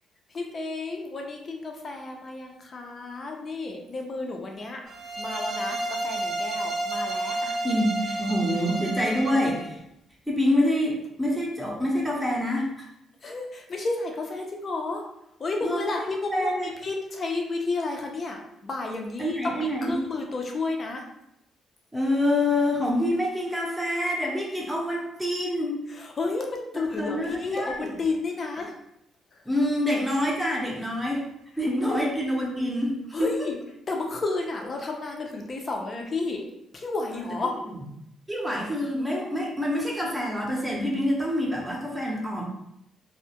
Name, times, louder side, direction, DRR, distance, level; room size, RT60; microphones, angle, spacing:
voice 1, 0.3-4.8 5.2-7.6 13.2-15.0 15.4-21.0 25.9-28.7 31.8-32.0 33.1-33.6 33.9-36.5 36.7-37.5, left 3 dB, 40° left, 2 dB, 0.5 m, -31 dB
sound 1, 4.9-9.7, right 2 dB, 45° right, 0.4 m, -31 dB
voice 2, 7.6-9.8 10.3-12.9 15.6-16.1 16.3-16.7 19.2-20.0 21.9-25.9 27.0-27.9 29.5-31.2 31.6-33.5 37.1-37.2 37.6-37.8 38.3-42.5, left 1 dB, 10° right, -2 dB, 0.6 m, -26 dB
2.2 x 2.0 x 2.8 m, 0.80 s
cardioid pair, 90°, 0 cm